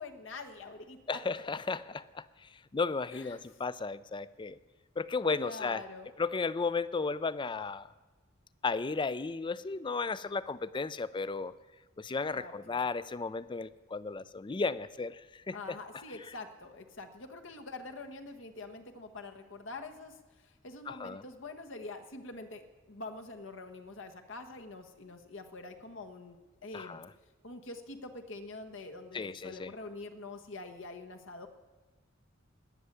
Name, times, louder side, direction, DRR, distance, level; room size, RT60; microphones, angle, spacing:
voice 1, 0.0-1.2 3.1-3.6 5.3-6.1 12.3-12.8 15.5-26.4 26.6-27.0 27.4-31.5, left 3 dB, 75° left, 5 dB, 1.4 m, -45 dB
voice 2, 1.1-2.2 2.7-4.6 5.0-5.8 6.2-7.9 8.6-11.5 12.0-15.2 15.5-15.6 20.9-21.2 26.7-27.1 29.1-29.7, left 4 dB, 25° left, 17 dB, 0.4 m, -34 dB
19.0 x 6.7 x 9.8 m, 1.2 s
head